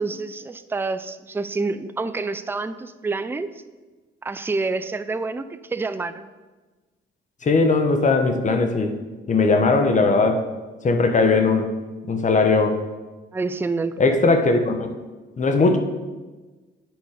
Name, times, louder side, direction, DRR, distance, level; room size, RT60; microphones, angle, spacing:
voice 1, 0.0-3.5 4.2-6.3 13.3-14.3, right 3 dB, 10° right, 12 dB, 0.4 m, -28 dB
voice 2, 7.4-8.9 9.3-10.4 10.8-11.7 12.1-12.8 14.0-15.0 15.4-15.8, left 3 dB, 40° left, 6 dB, 1.1 m, -19 dB
9.3 x 5.2 x 4.9 m, 1.3 s
cardioid pair, 90°, 20 cm